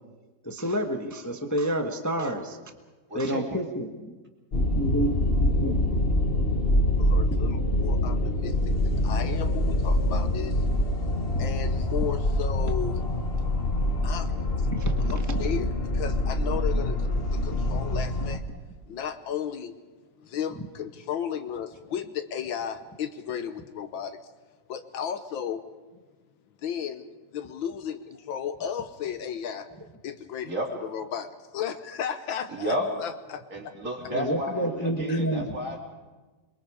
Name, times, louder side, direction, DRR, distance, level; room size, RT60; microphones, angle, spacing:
voice 1, 0.4-2.6 3.1-4.1 4.5-5.8 11.3-11.5 14.7-15.5 17.5-18.0 20.6-20.7 34.1-35.5, right 1 dB, 10° left, 4 dB, 1.0 m, -30 dB
voice 2, 3.1-3.6 30.4-30.7 32.5-32.9 33.5-35.8, equal, 40° right, 0 dB, 3.6 m, -32 dB
sound 1, 4.5-18.4, left 1 dB, 35° left, 1.3 m, -25 dB
voice 3, 7.0-8.5 8.8-10.7 11.4-13.0 14.0-14.3 15.1-18.4 18.9-19.7 20.2-24.2 24.7-25.6 26.6-27.0 27.3-29.7 30.0-30.5 30.8-33.4 35.1-35.2, left 8 dB, 75° left, 9 dB, 1.7 m, -34 dB
27.5 x 22.5 x 4.9 m, 1.3 s
omnidirectional pair, 2.2 m